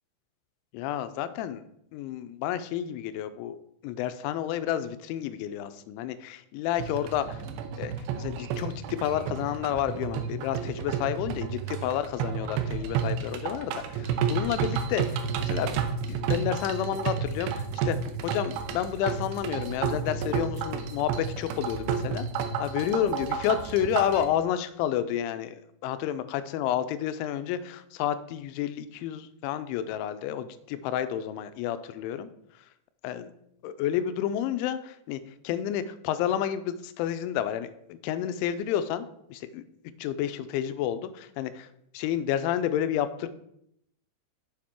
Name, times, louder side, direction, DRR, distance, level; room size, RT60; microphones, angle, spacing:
voice 1, 0.7-1.6 1.9-3.6 3.8-7.3 7.8-15.8 16.1-18.0 18.2-22.3 22.6-32.3 33.0-33.3 33.6-39.6 40.0-41.7 41.9-43.3, left 10 dB, 85° left, 12 dB, 2.9 m, -30 dB
sound 1, 6.8-24.3, right 6 dB, 85° right, 2.5 m, -31 dB
7.3 x 6.5 x 4.4 m, 0.75 s
omnidirectional pair, 5.4 m